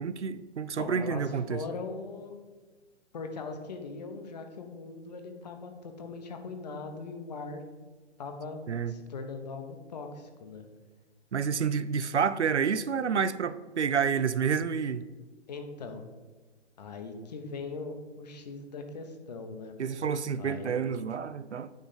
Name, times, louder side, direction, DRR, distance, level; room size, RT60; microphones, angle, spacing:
voice 1, 0.0-1.6 8.7-8.9 11.3-15.1 19.8-21.7, right 6 dB, 75° right, 0.5 m, -29 dB
voice 2, 0.8-2.4 3.1-7.6 8.2-8.6 8.9-10.7 15.5-16.0 16.8-19.7 20.4-20.8, left 4 dB, 35° left, 0.9 m, -40 dB
9.1 x 3.7 x 5.3 m
figure-of-eight pair, 130°, 35 cm